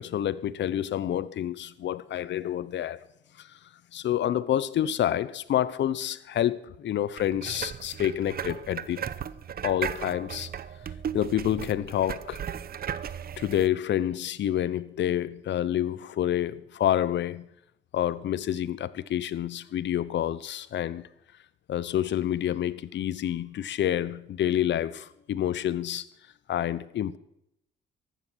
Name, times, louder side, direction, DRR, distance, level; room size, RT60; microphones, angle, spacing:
voice 1, 0.0-3.0 3.9-9.0 9.6-10.5 11.1-12.4 13.4-17.5 17.9-21.1 21.7-26.0 26.5-27.2, left 11 dB, 65° left, 0.9 m, -28 dB
sound 1, 7.2-13.7, right 8 dB, 50° right, 0.8 m, -36 dB
15.0 x 11.5 x 6.3 m
cardioid pair, 90°, 20 cm